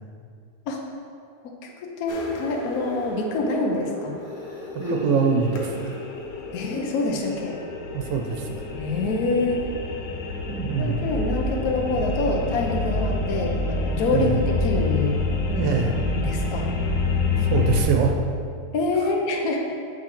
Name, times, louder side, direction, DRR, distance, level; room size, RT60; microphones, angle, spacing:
voice 1, 1.6-4.2 6.5-7.6 8.7-9.6 10.8-15.2 16.2-16.7 18.7-19.6, left 2 dB, 65° left, 1 dB, 1.0 m, -26 dB
sound 1, 2.1-17.8, left 3 dB, 85° left, 1.4 m, -28 dB
Human voice, 2.4-3.3 4.2-6.1 7.0-7.2, left 1 dB, 15° right, 1.4 m, -36 dB
voice 2, 4.9-6.0 7.9-8.5 10.5-11.0 14.1-14.4 15.5-16.0 17.5-18.1, right 5 dB, 80° right, 2 dB, 1.3 m, -23 dB
7.5 x 5.9 x 3.0 m, 2.3 s
omnidirectional pair, 2.0 m